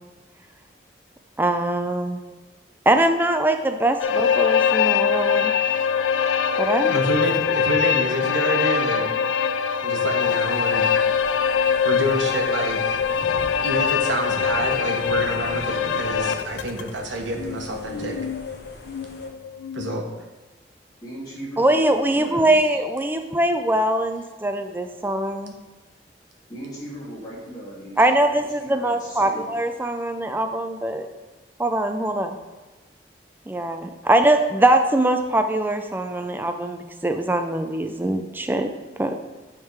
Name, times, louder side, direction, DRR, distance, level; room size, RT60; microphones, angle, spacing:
voice 1, 1.4-2.2 2.9-5.5 6.6-7.0 21.6-25.5 28.0-31.1 31.6-32.4 33.5-38.7 39.0-39.1, right 1 dB, 10° right, 6 dB, 0.3 m, -22 dB
sound 1, 4.0-16.9 17.4-20.0, left 7 dB, 85° left, 0.4 m, -23 dB
voice 2, 6.9-9.1 9.8-10.8 11.8-12.9 13.6-18.2 19.8-20.0, right 1 dB, 90° right, 1 dB, 1.2 m, -27 dB
sound 2, 10.2-19.3, left 1 dB, 60° left, 1.0 m, -42 dB
voice 3, 21.0-22.8 26.5-29.5, right 1 dB, 20° left, -8 dB, 2.5 m, -38 dB
9.2 x 3.7 x 4.6 m, 1.2 s
head